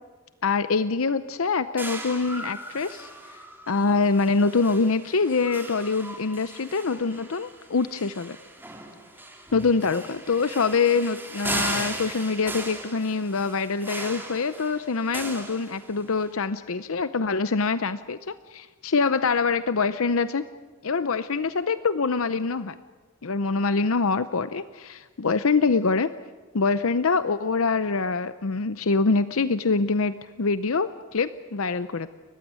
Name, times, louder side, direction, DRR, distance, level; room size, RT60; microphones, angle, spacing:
voice 1, 0.4-3.1 3.7-8.4 9.5-20.4 20.8-22.8 23.2-26.1 26.5-32.1, left 4 dB, 65° left, 13 dB, 0.7 m, -25 dB
sound 1, 1.8-16.2, right 2 dB, 10° right, 3.0 m, -37 dB
30.0 x 15.0 x 9.4 m, 1.4 s
head